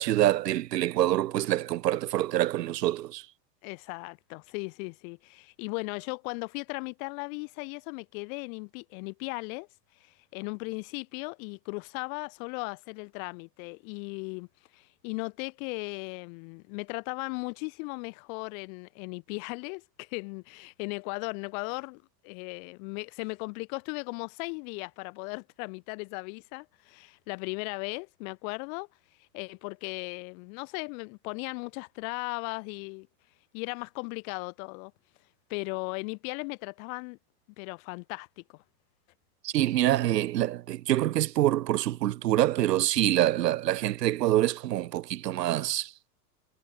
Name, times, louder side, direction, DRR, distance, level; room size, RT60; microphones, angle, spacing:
voice 1, 0.0-3.3 39.4-45.9, right 14 dB, 75° right, 2.9 m, -26 dB
voice 2, 3.6-9.7 10.0-14.5 14.7-28.9 29.2-33.1 33.5-34.9 35.5-37.2 37.6-38.6, left 34 dB, 55° left, 3.5 m, -37 dB
hypercardioid pair, 115°, 49 cm